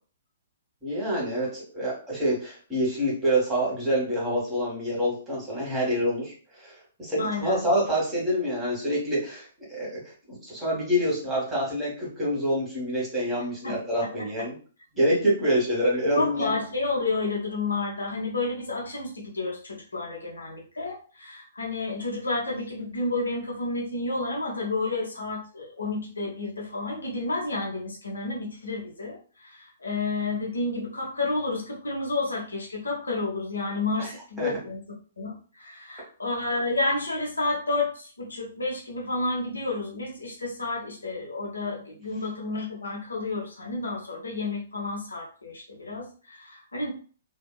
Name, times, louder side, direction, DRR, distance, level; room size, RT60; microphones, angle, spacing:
voice 1, 0.8-10.0 10.3-14.5 14.9-16.5 34.0-34.1 34.4-34.5, equal, 10° right, -6 dB, 1.5 m, -26 dB
voice 2, 7.2-7.6 13.6-13.7 16.1-34.8 35.2-46.9, left 3 dB, 75° left, -2 dB, 0.9 m, -30 dB
2.8 x 2.7 x 2.3 m, 0.40 s
figure-of-eight pair, 120°, 0 cm